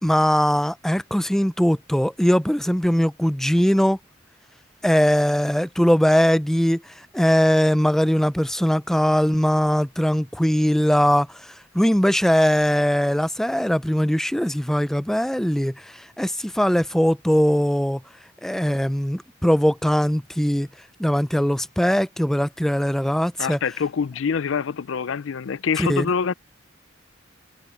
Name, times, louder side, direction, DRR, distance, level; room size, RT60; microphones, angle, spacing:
voice 1, 0.0-4.0 4.8-6.8 7.1-15.7 16.2-18.0 18.4-20.7 21.0-23.6 25.8-26.1, equal, ahead, 0.4 m, -20 dB
voice 2, 23.4-26.3, left 6 dB, 80° left, 0.5 m, -25 dB
head